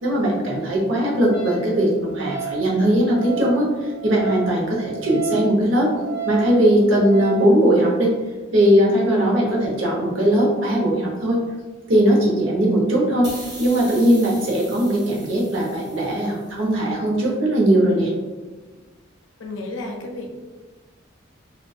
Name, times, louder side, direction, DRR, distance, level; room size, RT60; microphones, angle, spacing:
voice 1, 0.0-5.9 6.3-8.1 8.5-11.4 11.9-13.3 13.6-18.1, right 1 dB, 90° right, -3 dB, 0.7 m, -19 dB
Wind instrument woodwind instrument, 1.3-7.5, right 7 dB, 45° left, 0.7 m, -33 dB
sound 1, 13.2-16.6, right 1 dB, 20° right, 0.7 m, -40 dB
voice 2, 19.4-20.3, left 2 dB, 75° left, 1 dB, 0.5 m, -32 dB
2.6 x 2.2 x 2.3 m, 1.3 s
head